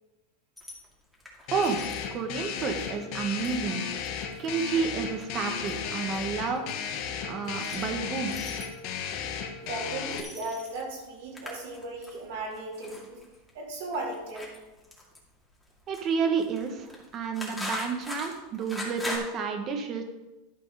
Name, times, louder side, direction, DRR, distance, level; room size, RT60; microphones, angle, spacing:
sound 1, 0.6-19.2, left 1 dB, 5° left, 2.4 m, -43 dB
sound 2, 1.5-10.2, left 7 dB, 55° left, 1.2 m, -35 dB
voice 1, 2.1-3.8 4.4-6.6 7.2-8.4 15.9-20.0, right 5 dB, 35° right, 5 dB, 1.5 m, -30 dB
voice 2, 9.6-13.2 13.5-14.5, right 2 dB, 80° right, -4 dB, 3.5 m, -36 dB
12.0 x 5.2 x 5.1 m, 1.1 s
supercardioid pair, 130°, 0 cm